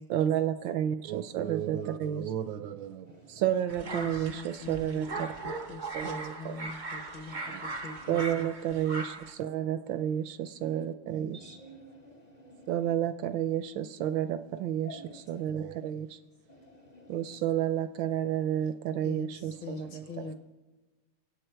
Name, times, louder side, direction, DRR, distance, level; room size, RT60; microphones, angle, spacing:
voice 1, 0.1-5.3 5.9-6.7 7.5-7.6 8.1-11.4 12.7-16.2 17.1-20.3, right 10 dB, 75° right, 1.1 m, -31 dB
voice 2, 3.0-3.4 7.2-8.3 10.6-10.9 11.3-12.9 14.8-15.5 16.5-17.4 19.8-19.9 20.3-20.4, equal, 85° left, 0.3 m, -51 dB
sound 1, 3.7-9.3, right 3 dB, 50° right, 0.5 m, -39 dB
voice 3, 3.8-8.5 19.0-20.3, left 5 dB, 65° left, 1.4 m, -43 dB
24.0 x 8.3 x 4.5 m
omnidirectional pair, 2.4 m